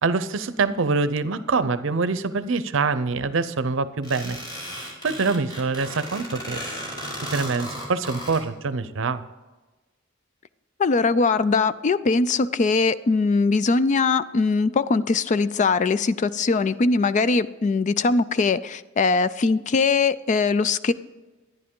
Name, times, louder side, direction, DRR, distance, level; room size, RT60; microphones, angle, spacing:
voice 1, 0.0-4.4 5.0-6.6 7.3-9.2, right 4 dB, 70° right, 14 dB, 0.6 m, -25 dB
sound 1, 4.0-8.4, equal, 20° left, 3.6 m, -35 dB
voice 2, 10.8-20.9, left 4 dB, 40° left, 15 dB, 0.4 m, -21 dB
11.0 x 10.5 x 3.7 m, 1.2 s
head